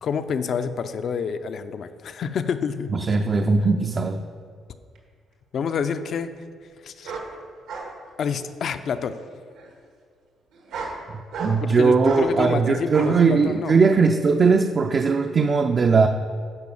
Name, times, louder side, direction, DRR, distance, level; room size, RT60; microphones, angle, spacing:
voice 1, 0.0-2.9 5.5-6.3 6.8-7.3 8.2-9.2 11.6-13.7, left 6 dB, 55° left, 10 dB, 0.6 m, -28 dB
voice 2, 2.9-4.2 11.1-16.1, right 4 dB, 35° right, 4 dB, 0.5 m, -19 dB
sound 1, 5.0-5.1 7.0-7.3 7.7-7.9 8.3-8.8 9.6-9.7 10.5-11.0 11.3-11.7 12.0-12.3 12.9-13.1 13.7-13.8, right 4 dB, 90° right, 2.1 m, -34 dB
11.0 x 5.1 x 7.0 m, 2.1 s
cardioid pair, 115°, 0 cm